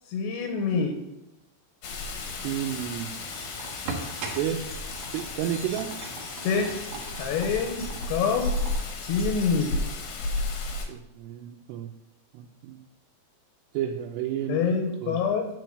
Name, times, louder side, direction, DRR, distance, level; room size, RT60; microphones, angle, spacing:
voice 1, 0.1-1.0 6.4-6.7 7.2-8.5 9.0-9.8 14.5-15.5, left 5 dB, 85° left, 4 dB, 3.0 m, -26 dB
Rain, 1.8-10.9, left 2 dB, 65° left, 2.2 m, -33 dB
voice 2, 2.4-3.1 4.3-4.6 5.1-5.9 10.9-11.9 12.3-12.8 13.7-14.7 15.0-15.2, right 10 dB, 85° right, 1 dB, 2.8 m, -31 dB
sound 1, 2.8-8.9, right 4 dB, 65° right, 1.8 m, -41 dB
sound 2, 3.3-9.7, equal, 10° left, 1.1 m, -49 dB
8.6 x 4.6 x 6.5 m, 0.95 s
omnidirectional pair, 4.8 m